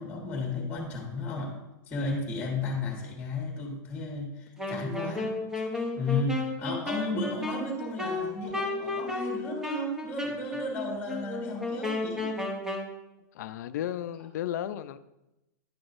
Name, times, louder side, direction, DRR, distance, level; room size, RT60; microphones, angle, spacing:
voice 1, 0.0-1.6 1.9-12.3, left 2 dB, 15° left, 1.4 m, -34 dB
Wind instrument woodwind instrument, 4.6-12.9, left 2 dB, 5° right, 0.8 m, -33 dB
voice 2, 13.3-15.0, left 11 dB, 65° left, 0.4 m, -34 dB
10.5 x 6.0 x 2.5 m
supercardioid pair, 160°, 10 cm